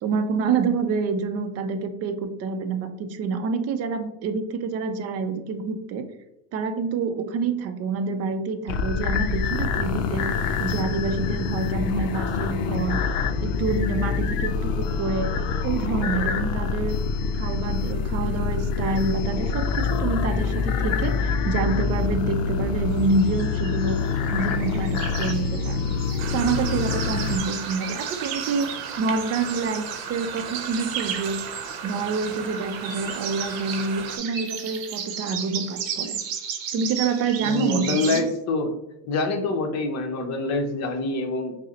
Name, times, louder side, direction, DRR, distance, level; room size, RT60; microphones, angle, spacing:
voice 1, 0.0-6.0 6.5-10.3 10.6-13.0 13.4-15.3 15.6-24.0 24.3-26.0 26.3-28.7 29.0-31.4 31.8-36.2 36.7-38.2, right 4 dB, 40° right, 8 dB, 0.4 m, -27 dB
sound 1, 8.7-27.4, left 5 dB, 75° left, 0.5 m, -26 dB
sound 2, 23.0-31.8 32.0-38.2, right 8 dB, 60° right, 0.7 m, -35 dB
sound 3, 26.2-34.2, right 6 dB, 90° right, 0.7 m, -35 dB
voice 2, 37.4-38.7 39.0-41.6, left 2 dB, 40° left, 4 dB, 0.7 m, -26 dB
5.4 x 2.0 x 2.9 m, 0.91 s
supercardioid pair, 120°, 41 cm